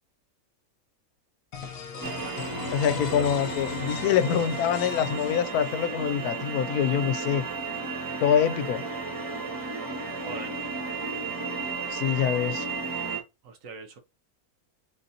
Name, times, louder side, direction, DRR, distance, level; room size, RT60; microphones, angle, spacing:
sound 1, 1.5-6.1, left 5 dB, 70° left, 1.2 m, -38 dB
voice 1, 1.9-2.4 2.9-3.3 10.2-10.6 13.4-14.0, right 5 dB, 65° right, 1.3 m, -41 dB
sound 2, 2.0-13.2, right 4 dB, 15° right, 0.8 m, -33 dB
voice 2, 2.7-7.5 8.2-8.8 11.9-12.7, left 9 dB, 90° left, 1.1 m, -25 dB
4.0 x 3.8 x 2.7 m
omnidirectional pair, 1.5 m